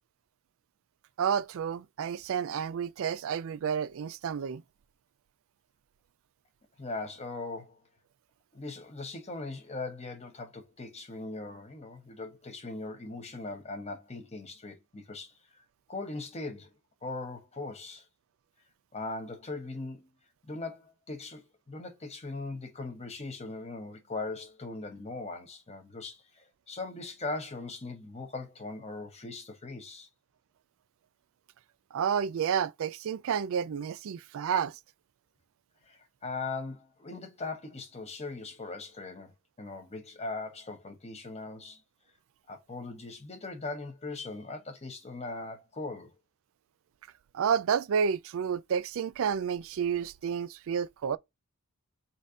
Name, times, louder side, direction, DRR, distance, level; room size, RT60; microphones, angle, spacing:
voice 1, 1.2-4.6 31.9-34.8 47.3-51.2, right 7 dB, 65° right, 0.4 m, -30 dB
voice 2, 6.8-7.8 8.5-15.6 15.9-16.7 17.0-18.0 18.9-20.1 20.4-30.1 35.8-41.8 42.5-46.1, left 3 dB, 30° left, 1.0 m, -40 dB
4.1 x 2.7 x 4.8 m
head